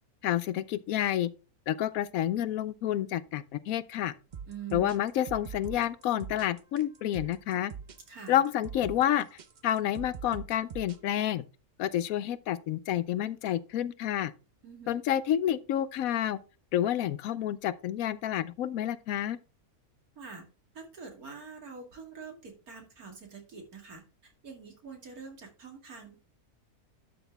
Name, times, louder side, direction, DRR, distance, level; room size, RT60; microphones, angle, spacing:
voice 1, 0.2-1.3 1.7-4.1 4.7-7.7 8.3-11.4 11.8-14.3 14.9-16.4 16.7-19.4, left 11 dB, 75° left, 1.0 m, -29 dB
sound 1, 4.3-11.0, right 6 dB, 50° right, 0.5 m, -43 dB
voice 2, 4.5-5.0 8.1-8.4 14.6-15.0 20.2-20.4 20.7-26.1, right 6 dB, 80° right, 2.9 m, -45 dB
11.5 x 6.0 x 3.4 m
omnidirectional pair, 1.5 m